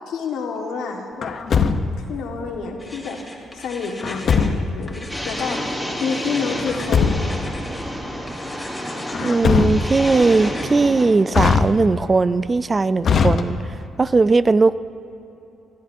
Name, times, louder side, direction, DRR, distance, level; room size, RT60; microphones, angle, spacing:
voice 1, 0.1-1.4 2.1-3.2 3.5-7.4, left 5 dB, 80° left, 1 dB, 1.5 m, -28 dB
Truck, 1.2-2.2 4.0-4.9 6.5-7.5 9.1-10.1 11.3-12.1 13.0-13.9, left 5 dB, 55° left, 0.7 m, -20 dB
sound 1, 2.8-4.5 4.8-7.8 8.3-9.4 9.7-10.7, left 2 dB, 15° left, 2.2 m, -39 dB
sound 2, 5.1-11.1, equal, ahead, 2.8 m, -30 dB
voice 2, 9.2-14.8, right 3 dB, 30° right, 15 dB, 0.3 m, -18 dB
22.5 x 14.0 x 2.7 m, 2.9 s
cardioid pair, 90°, 0 cm